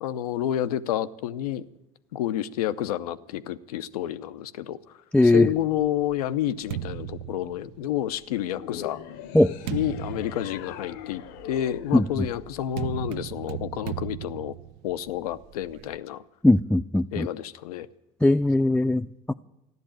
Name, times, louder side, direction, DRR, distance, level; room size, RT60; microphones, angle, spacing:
voice 1, 0.0-1.7 2.1-4.8 5.2-9.0 9.7-14.5 14.8-16.2 17.1-17.9, left 11 dB, 90° left, 0.7 m, -29 dB
voice 2, 5.1-5.5 9.3-9.5 11.9-12.3 16.4-17.3 18.2-19.3, left 2 dB, 5° left, 0.5 m, -20 dB
sound 1, 5.4-8.2 8.9-16.0, right 11 dB, 75° right, 0.7 m, -38 dB
sound 2, 8.5-13.0, left 10 dB, 75° left, 1.0 m, -42 dB
13.5 x 11.5 x 8.8 m
hypercardioid pair, 70°, 19 cm